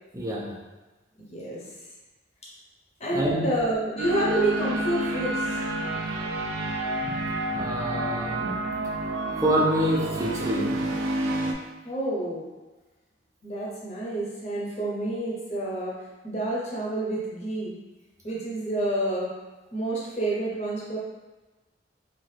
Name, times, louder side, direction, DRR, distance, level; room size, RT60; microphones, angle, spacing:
voice 1, 0.1-0.5 3.1-3.6 7.0-7.2 7.5-8.6 9.4-10.9, equal, 15° right, -4 dB, 0.5 m, -27 dB
voice 2, 1.3-1.6 2.4-2.5 3.0-5.6 11.8-12.4 13.4-16.0 16.2-17.8 18.2-19.3 19.7-21.0, right 1 dB, 35° left, -6 dB, 0.7 m, -28 dB
sound 1, 4.0-11.5, right 2 dB, 90° right, 0.4 m, -29 dB
2.8 x 2.4 x 3.2 m, 1.2 s
head